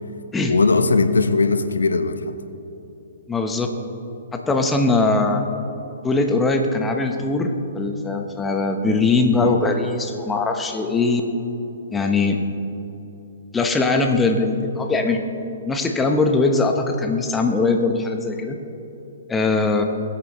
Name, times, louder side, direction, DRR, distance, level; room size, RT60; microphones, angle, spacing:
voice 1, 0.5-2.3 9.3-9.6, left 4 dB, 80° left, 9 dB, 0.8 m, -19 dB
voice 2, 3.3-3.7 4.3-5.4 6.0-11.2 11.9-12.4 13.5-15.2 15.6-18.6 19.3-19.8, left 3 dB, 10° left, 4 dB, 1.1 m, -21 dB
22.0 x 8.7 x 3.2 m, 3.0 s
hypercardioid pair, 125°, 0 cm